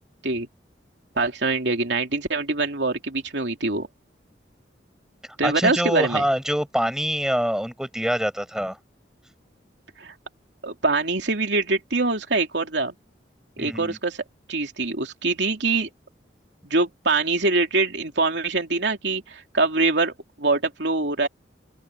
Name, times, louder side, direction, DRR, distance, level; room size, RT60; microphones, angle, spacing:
voice 1, 1.2-3.9 5.4-6.2 10.0-10.1 10.6-12.9 13.6-14.2 14.5-15.9 16.7-21.3, right 3 dB, 75° right, 2.9 m, -24 dB
voice 2, 5.2-8.8 13.6-14.0, equal, 5° right, 6.7 m, -25 dB
head